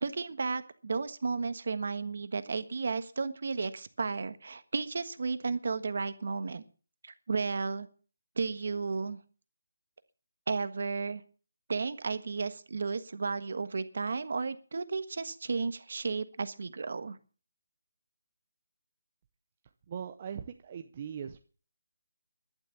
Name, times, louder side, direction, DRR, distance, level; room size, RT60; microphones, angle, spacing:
voice 1, 0.0-6.6 7.0-7.9 8.4-9.2 10.5-11.2 11.7-17.2, right 4 dB, 45° right, 12 dB, 1.4 m, -33 dB
voice 2, 19.9-21.4, right 8 dB, 20° right, 7 dB, 0.6 m, -40 dB
12.0 x 11.5 x 6.7 m, 0.38 s
hypercardioid pair, 180°, 0 cm